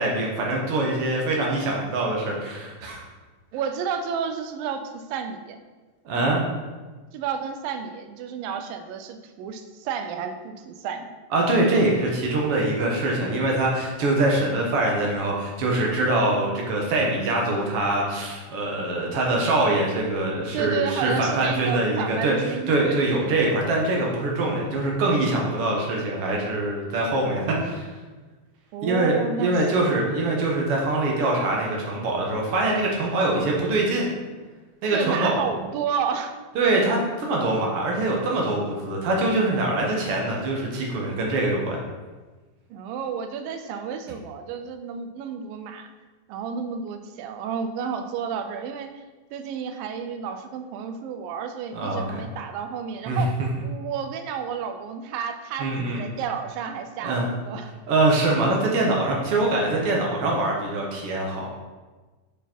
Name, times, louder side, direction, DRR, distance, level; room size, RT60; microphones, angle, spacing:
voice 1, 0.0-3.0 6.0-6.4 11.3-22.3 22.7-27.9 28.8-34.0 34.8-35.4 36.5-41.8 51.7-52.2 53.1-53.2 55.6-56.0 57.0-57.3 57.9-61.5, right 2 dB, 70° right, -1 dB, 1.4 m, -23 dB
voice 2, 3.5-5.6 7.1-11.1 20.5-23.4 28.7-29.8 34.9-36.3 42.7-45.9 46.3-49.0 49.3-53.3 53.6-57.7, right 7 dB, 85° right, 7 dB, 2.3 m, -31 dB
8.0 x 4.7 x 4.4 m, 1.3 s
omnidirectional pair, 4.0 m